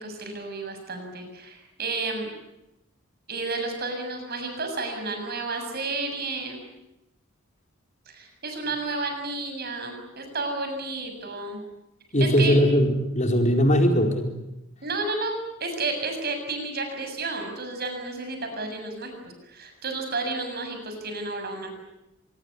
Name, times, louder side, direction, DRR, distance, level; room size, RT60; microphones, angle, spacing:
voice 1, 0.0-2.3 3.3-6.6 8.1-11.6 12.2-12.6 14.8-15.4 15.6-21.7, right 3 dB, 50° right, 5 dB, 7.2 m, -31 dB
voice 2, 12.1-14.3, equal, 35° left, 3 dB, 4.4 m, -20 dB
25.0 x 21.5 x 9.8 m, 0.91 s
head